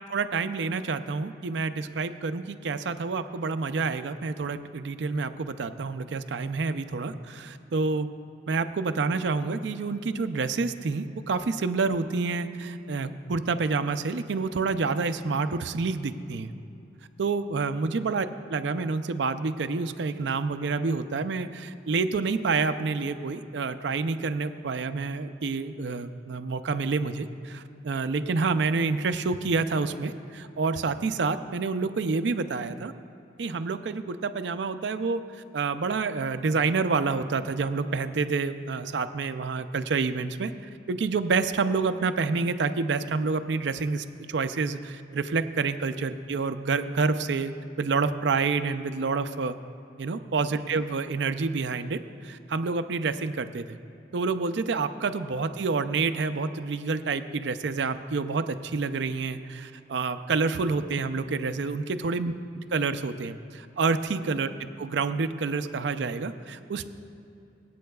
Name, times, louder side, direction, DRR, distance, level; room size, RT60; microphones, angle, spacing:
voice 1, 0.1-8.1 8.5-16.5 17.2-32.9 33.4-35.2 35.5-40.5 40.9-49.6 50.0-53.7 54.1-62.3 62.7-64.5 64.8-66.8, right 4 dB, 70° right, 10 dB, 0.5 m, -28 dB
25.0 x 8.5 x 2.3 m, 2.7 s
head